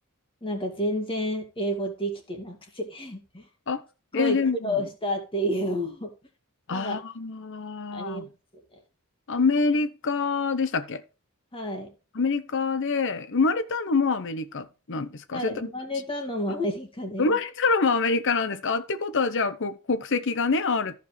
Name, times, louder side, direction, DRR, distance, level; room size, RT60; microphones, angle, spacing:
voice 1, 0.4-3.4 4.1-6.1 6.7-7.0 7.9-8.2 11.5-11.9 15.3-17.4, equal, 25° left, 2.2 m, -30 dB
voice 2, 4.1-4.8 6.7-8.3 9.3-11.0 12.1-15.5 17.2-21.0, left 4 dB, 60° left, 0.8 m, -26 dB
14.5 x 5.4 x 3.2 m
head